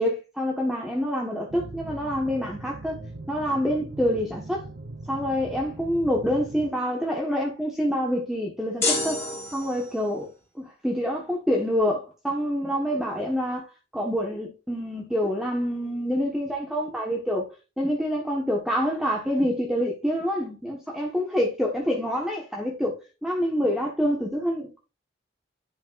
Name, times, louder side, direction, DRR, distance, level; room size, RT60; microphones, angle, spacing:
voice 1, 0.0-3.0 3.3-4.7 5.1-9.2 9.5-10.3 10.5-17.5 17.8-24.8, equal, 5° right, 1.3 m, -27 dB
sound 1, 1.5-6.7, right 2 dB, 70° right, 0.8 m, -41 dB
sound 2, 8.8-10.1, left 3 dB, 15° left, 3.2 m, -28 dB
10.5 x 5.2 x 2.5 m
head